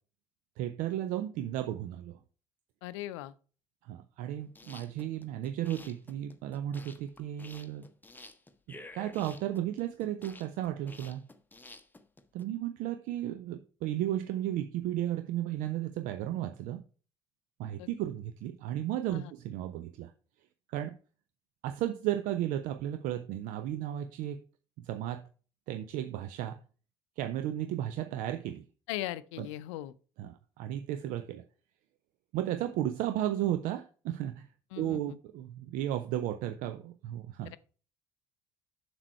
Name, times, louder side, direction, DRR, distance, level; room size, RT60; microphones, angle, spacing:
voice 1, 0.6-2.2 3.8-7.9 8.7-11.3 12.3-16.8 17.6-20.1 20.7-21.0 21.6-24.4 24.8-25.3 25.7-26.6 27.2-28.6 29.4-29.5 30.2-31.4 32.3-34.5 34.8-37.5, right 12 dB, 55° right, 0.5 m, -34 dB
voice 2, 2.8-3.3 17.8-17.9 19.1-19.3 28.9-29.9 34.7-35.2 37.5-37.6, left 15 dB, 65° left, 0.5 m, -39 dB
sound 1, 4.4-12.4, left 2 dB, 10° left, 0.8 m, -51 dB
7.3 x 6.8 x 4.4 m
figure-of-eight pair, 50°, 16 cm